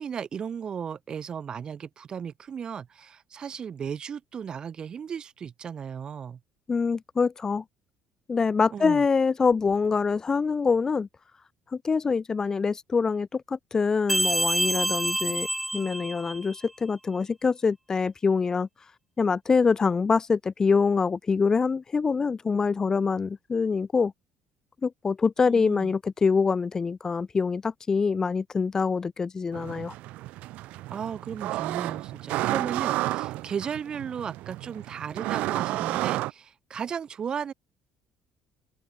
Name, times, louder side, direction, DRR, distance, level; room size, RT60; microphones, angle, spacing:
voice 1, 0.0-6.4 8.7-9.0 25.5-25.9 30.9-37.5, right 7 dB, 40° right, 4.4 m, -35 dB
voice 2, 6.7-7.6 8.3-11.1 11.7-15.5 15.7-18.7 19.2-24.1 24.8-29.9, left 5 dB, 25° left, 1.0 m, -25 dB
sound 1, 14.1-16.7, right 1 dB, 5° right, 1.9 m, -27 dB
sound 2, 29.5-36.3, right 17 dB, 75° right, 3.4 m, -31 dB
cardioid pair, 120°, 2 cm